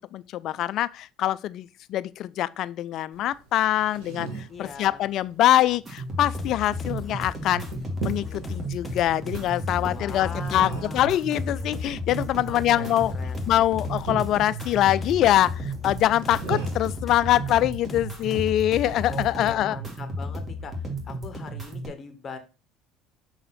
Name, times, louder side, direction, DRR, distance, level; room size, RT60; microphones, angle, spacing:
voice 1, 0.1-7.7 8.0-13.1 13.5-19.8, left 13 dB, 60° left, 0.4 m, -24 dB
sound 1, 3.1-19.0, right 4 dB, 75° right, 2.1 m, -40 dB
voice 2, 4.5-5.0 9.8-11.2 12.4-13.4 19.1-22.4, left 5 dB, 35° left, 1.6 m, -41 dB
sound 2, 5.8-21.9, equal, 30° right, 2.4 m, -34 dB
sound 3, 6.4-19.5, left 3 dB, 20° left, 1.4 m, -40 dB
6.4 x 4.1 x 4.2 m
supercardioid pair, 80°, 0 cm